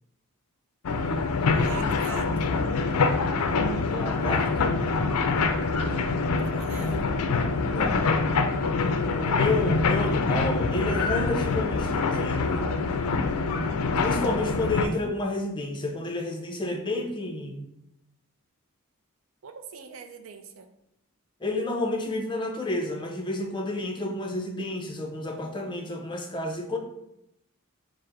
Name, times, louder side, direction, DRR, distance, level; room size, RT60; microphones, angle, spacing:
sound 1, 0.8-14.8, left 4 dB, 85° left, 0.4 m, -25 dB
voice 1, 1.5-2.5 6.4-7.1 19.4-20.7, right 6 dB, 65° right, 7 dB, 0.5 m, -42 dB
voice 2, 3.8-4.8 7.6-8.0 9.1-12.6 14.0-17.6 21.4-26.8, left 2 dB, 20° left, 3 dB, 0.5 m, -30 dB
4.7 x 2.1 x 4.7 m, 0.82 s
head